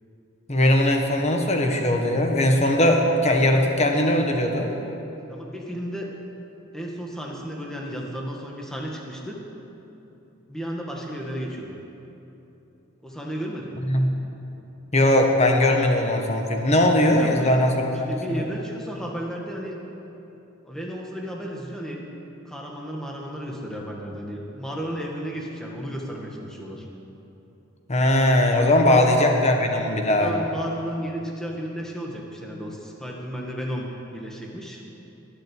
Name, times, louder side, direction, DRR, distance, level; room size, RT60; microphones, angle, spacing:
voice 1, 0.5-4.7 13.9-14.1 14.9-18.4 27.9-30.3, left 1 dB, 30° left, 3 dB, 1.5 m, -20 dB
voice 2, 5.3-6.1 6.7-9.4 10.5-11.8 13.0-13.9 17.2-19.8 20.6-22.0 22.5-26.9 28.9-29.0 30.1-33.9 34.1-34.8, equal, 5° left, -2 dB, 1.9 m, -33 dB
21.0 x 7.9 x 8.6 m, 3.0 s
head